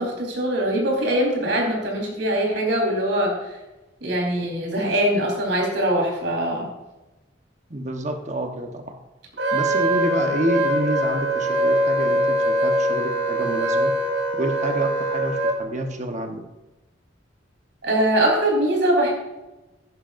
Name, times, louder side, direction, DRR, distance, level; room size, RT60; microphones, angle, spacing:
voice 1, 0.0-3.3 4.0-6.7 17.8-19.1, right 1 dB, 70° right, -1 dB, 4.3 m, -22 dB
voice 2, 7.7-9.0 9.5-13.9 14.3-16.5, right 1 dB, 40° right, 4 dB, 1.2 m, -28 dB
Wind instrument woodwind instrument, 9.4-15.6, right 1 dB, 85° right, 3.0 m, -22 dB
16.0 x 11.0 x 2.6 m, 1.1 s
head